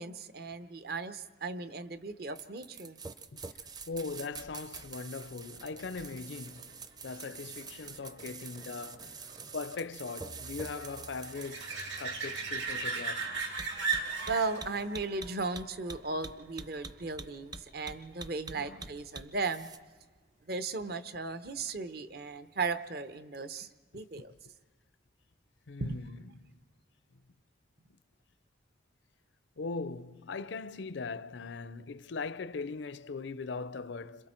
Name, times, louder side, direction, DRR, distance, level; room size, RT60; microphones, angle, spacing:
voice 1, 0.0-3.0 14.3-19.7 20.5-23.7 23.9-24.3 25.8-26.0, right 3 dB, 55° right, 0.8 m, -36 dB
sound 1, 2.3-19.8, right 4 dB, 20° right, 0.6 m, -46 dB
voice 2, 3.9-6.7 7.0-9.2 9.5-13.3 18.5-18.9 24.1-24.3 25.7-26.2 29.6-34.3, left 4 dB, 75° left, 0.5 m, -40 dB
sound 2, 5.7-17.0 22.6-22.7, right 5 dB, 70° right, 3.0 m, -39 dB
27.0 x 26.0 x 4.4 m
head